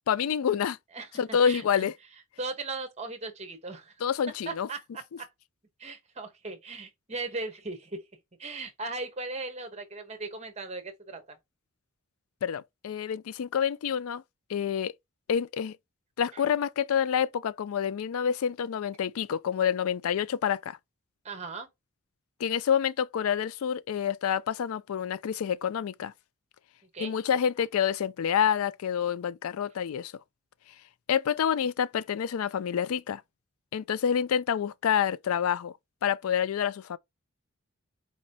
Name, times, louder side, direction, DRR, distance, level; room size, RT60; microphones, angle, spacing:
voice 1, 0.1-0.8 1.2-1.9 4.0-4.7 12.4-14.2 14.5-14.9 15.3-15.8 16.2-20.8 22.4-26.1 27.0-30.1 31.1-33.2 33.7-35.7 36.0-37.0, left 8 dB, 85° left, 0.4 m, -28 dB
voice 2, 0.9-1.9 2.4-3.9 4.5-5.3 5.8-8.0 8.4-11.4 16.3-16.4 21.2-21.7 26.9-27.1, right 3 dB, 30° right, 0.9 m, -38 dB
4.4 x 2.9 x 2.7 m
head